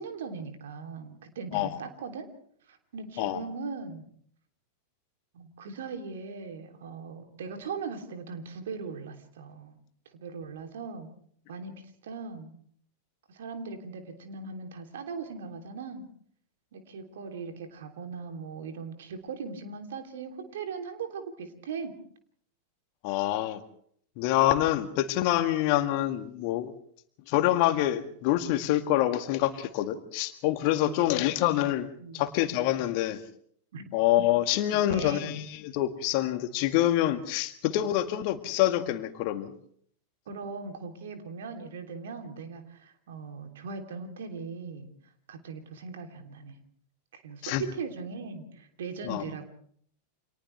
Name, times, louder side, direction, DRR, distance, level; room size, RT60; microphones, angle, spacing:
voice 1, 0.0-2.3 2.7-4.0 5.3-9.8 10.1-11.1 11.5-11.7 12.0-12.6 13.3-16.0 16.7-21.9 30.8-30.9 32.0-32.2 33.7-33.9 34.7-35.3 40.3-44.9 45.3-46.6 47.1-49.5, right 5 dB, 60° right, 5 dB, 3.2 m, -39 dB
voice 2, 23.0-23.6 24.2-26.7 27.3-31.9 32.1-33.2 33.9-39.5 47.4-47.6 49.0-49.2, left 13 dB, 45° left, 8 dB, 1.9 m, -26 dB
30.0 x 26.5 x 3.4 m, 0.62 s
figure-of-eight pair, 90°, 0 cm